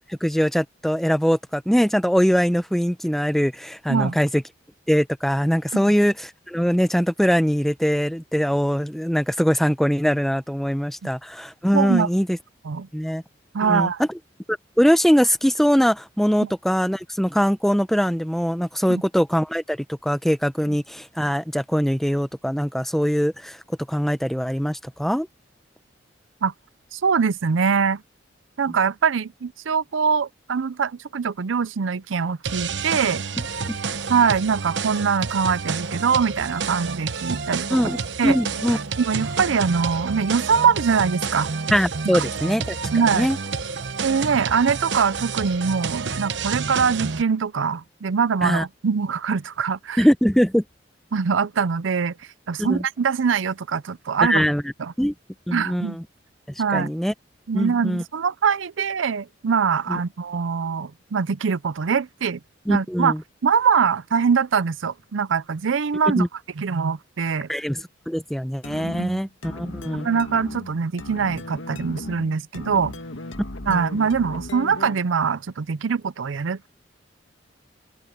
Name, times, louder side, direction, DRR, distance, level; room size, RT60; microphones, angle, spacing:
voice 1, 0.2-4.4 4.9-12.3 12.9-13.2 13.7-13.9 14.5-23.6 23.9-25.3 33.7-33.8 37.7-38.0 38.2-38.8 41.7-42.8 43.1-43.4 48.4-48.6 50.0-50.6 52.6-52.8 54.2-54.6 55.0-55.1 55.5-56.0 56.7-57.1 57.5-58.0 59.9-60.0 62.7-63.2 66.1-66.3 67.5-70.1 73.7-73.8, equal, ahead, 0.7 m, -22 dB
voice 2, 11.7-12.1 12.6-12.9 13.5-14.0 16.4-16.5 18.9-19.0 26.4-26.5 26.9-28.0 28.6-33.2 34.1-37.8 38.2-38.4 39.0-41.5 42.0-42.2 42.9-43.4 44.0-50.1 51.1-52.1 52.5-54.5 54.8-54.9 55.5-56.0 56.6-56.9 57.5-62.4 62.7-63.1 63.4-66.2 66.6-67.5 68.8-69.2 69.9-72.9 73.7-76.7, right 6 dB, 85° right, 0.5 m, -23 dB
sound 1, 32.4-47.2, right 5 dB, 65° right, 1.0 m, -29 dB
sound 2, 68.6-75.1, left 1 dB, 90° left, 1.9 m, -36 dB
open air
head